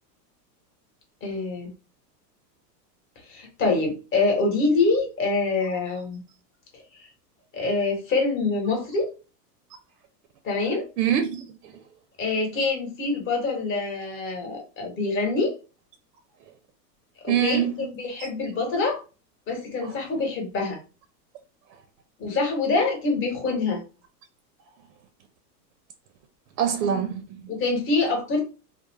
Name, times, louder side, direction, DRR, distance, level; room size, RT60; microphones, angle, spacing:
voice 1, 1.2-1.7 3.3-6.2 7.0-7.1 7.5-9.1 10.4-10.9 12.2-15.5 17.2-19.0 19.5-20.8 22.2-23.8 27.5-28.4, left 3 dB, 25° left, 0.8 m, -25 dB
voice 2, 11.0-11.7 17.3-17.9 19.8-20.0 26.6-27.4, right 9 dB, 80° right, 0.6 m, -25 dB
2.4 x 2.0 x 3.2 m
supercardioid pair, 130°, 50 cm